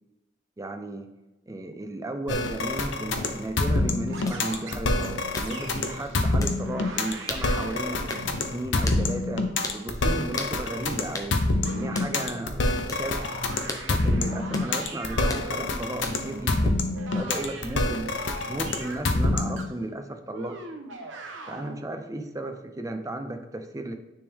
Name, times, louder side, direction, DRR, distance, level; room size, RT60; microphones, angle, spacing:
voice 1, 0.6-1.1 1.5-8.0 8.4-9.5 9.7-11.4 11.7-12.6 12.9-13.3 13.9-16.7 17.1-18.1 18.5-20.6 21.5-23.9, right 1 dB, 20° right, 7 dB, 0.5 m, -34 dB
sound 1, 2.3-19.7, left 2 dB, 80° left, 0.8 m, -26 dB
sound 2, 4.1-6.2 6.5-8.9 11.6-19.1 19.6-19.7 20.3-21.7, right 3 dB, 85° right, 0.9 m, -41 dB
sound 3, 4.3-4.4 5.3-5.5 6.4-6.6 7.3-7.5 8.1-8.3 8.9-9.0 9.6-9.8 10.4-10.6 11.1-11.3 12.0-12.1 12.9-13.1 13.7-13.9 14.5-14.7 15.3-15.5 16.0-16.3, left 3 dB, 20° left, 0.7 m, -35 dB
9.7 x 3.6 x 3.5 m, 1.0 s
head